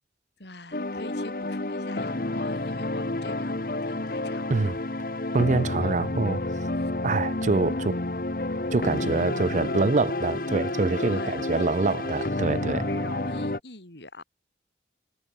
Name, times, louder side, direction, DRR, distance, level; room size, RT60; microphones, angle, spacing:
voice 1, 0.4-4.8 5.7-5.9 6.7-6.9 11.0-12.2 12.9-14.2, left 2 dB, 75° left, 5.2 m, -44 dB
sound 1, 0.7-13.6, left 2 dB, 50° left, 1.2 m, -30 dB
voice 2, 5.3-6.4 7.0-8.0 8.7-12.9, right 3 dB, 45° right, 0.4 m, -25 dB
sound 2, 8.4-13.6, right 1 dB, 20° right, 4.6 m, -46 dB
head